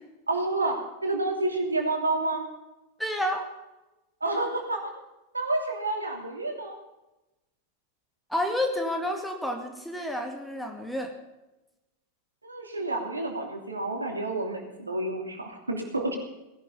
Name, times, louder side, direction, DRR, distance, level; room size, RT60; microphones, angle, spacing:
voice 1, 0.3-2.5 4.2-4.9 5.3-6.8 12.4-16.2, right 2 dB, 80° right, 3 dB, 3.0 m, -29 dB
voice 2, 3.0-3.4 8.3-11.1, left 1 dB, ahead, 3 dB, 2.2 m, -30 dB
18.0 x 11.5 x 5.6 m, 0.98 s
figure-of-eight pair, 90°, 0 cm